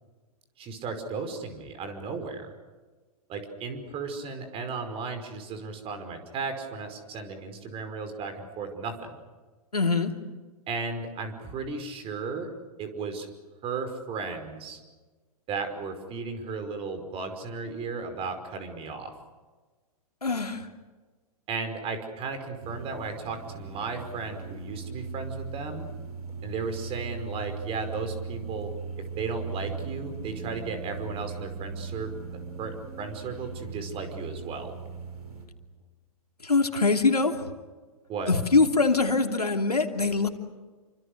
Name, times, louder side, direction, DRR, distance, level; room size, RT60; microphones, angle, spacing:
voice 1, 0.6-2.5 3.3-9.1 10.7-13.3 13.6-14.8 15.5-19.1 21.5-25.9 26.4-32.1 32.6-34.8 38.1-38.3, right 4 dB, 30° right, 8 dB, 5.3 m, -35 dB
voice 2, 9.7-10.1 20.2-20.7 36.4-37.5 38.3-40.3, left 3 dB, 90° left, 5 dB, 2.9 m, -23 dB
sound 1, 22.6-35.5, right 5 dB, 80° right, 5.9 m, -38 dB
29.0 x 25.5 x 6.6 m, 1.3 s
figure-of-eight pair, 110°, 19 cm